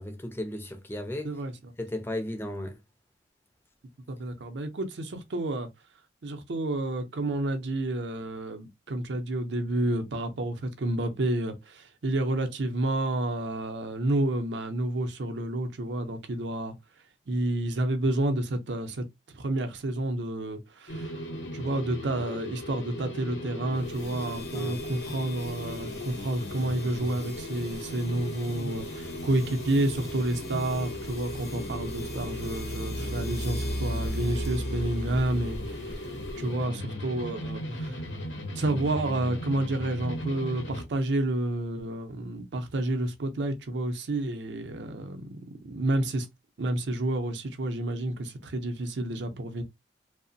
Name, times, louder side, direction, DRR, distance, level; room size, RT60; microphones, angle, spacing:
voice 1, 0.0-1.3 1.8-2.8 24.5-24.8, left 1 dB, 10° left, 0.4 m, -35 dB
voice 2, 4.1-5.7 6.2-16.7 17.3-19.0 19.3-21.1 21.5-36.1 36.3-38.0 38.5-45.4 45.6-46.3 46.6-49.6, right 1 dB, 75° right, 0.5 m, -30 dB
sound 1, 20.9-40.8, equal, 85° left, 0.7 m, -38 dB
Violin Bow on Cymbal A, 23.8-36.7, equal, 60° left, 0.9 m, -38 dB
2.7 x 2.1 x 2.6 m
head